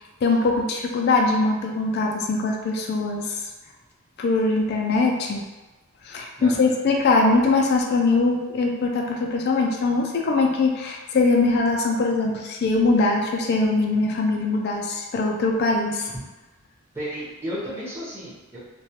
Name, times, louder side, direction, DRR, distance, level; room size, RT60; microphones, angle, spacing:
voice 1, 0.2-3.5 4.2-5.4 6.0-16.1, left 3 dB, 50° left, 1 dB, 0.3 m, -22 dB
voice 2, 6.4-6.8 16.1-16.2 16.9-18.6, equal, 10° right, -10 dB, 0.7 m, -33 dB
2.2 x 2.2 x 2.8 m, 1.1 s
head